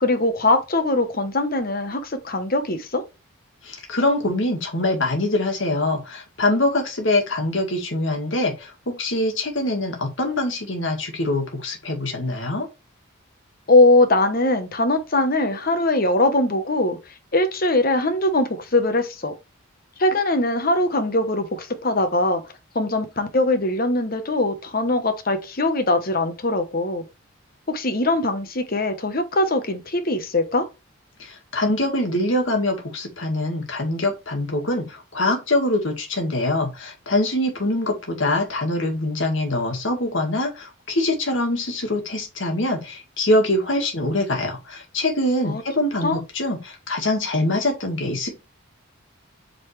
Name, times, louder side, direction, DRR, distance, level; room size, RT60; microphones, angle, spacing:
voice 1, 0.0-3.0 13.7-17.0 17.3-19.3 20.0-22.4 22.7-27.0 27.7-30.7 45.4-45.6 46.0-46.2, left 2 dB, 45° left, 1.1 m, -21 dB
voice 2, 3.6-12.7 31.2-48.3, left 1 dB, 60° left, 2.0 m, -24 dB
7.9 x 4.0 x 3.3 m
head